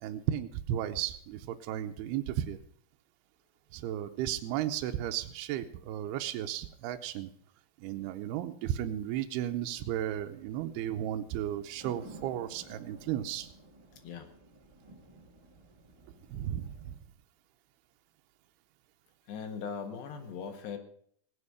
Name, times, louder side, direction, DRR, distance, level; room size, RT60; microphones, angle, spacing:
voice 1, 0.0-2.6 3.7-7.3 7.8-13.5 16.3-16.9, right 11 dB, 80° right, 5 dB, 2.7 m, -34 dB
sound 1, 9.5-17.0, right 2 dB, 50° right, 0.3 m, -54 dB
voice 2, 19.3-20.8, left 6 dB, 90° left, 4 dB, 3.9 m, -39 dB
18.0 x 9.8 x 4.9 m, 0.62 s
omnidirectional pair, 4.7 m